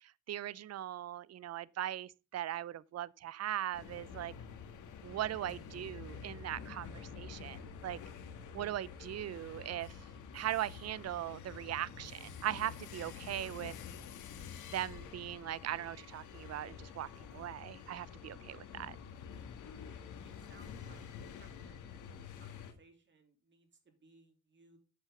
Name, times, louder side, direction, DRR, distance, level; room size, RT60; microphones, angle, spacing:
voice 1, 0.0-4.3 5.0-8.0 8.5-10.0 10.3-13.7 14.7-18.9, right 12 dB, 55° right, 0.6 m, -39 dB
sound 1, 3.7-22.7, left 7 dB, 80° left, 1.7 m, -48 dB
sound 2, 5.0-12.8, right 7 dB, 70° right, 3.8 m, -59 dB
voice 2, 18.3-18.7 20.2-21.1 21.4-24.8, right 3 dB, 40° right, 3.0 m, -63 dB
8.7 x 7.4 x 3.6 m
cardioid pair, 90°, 30 cm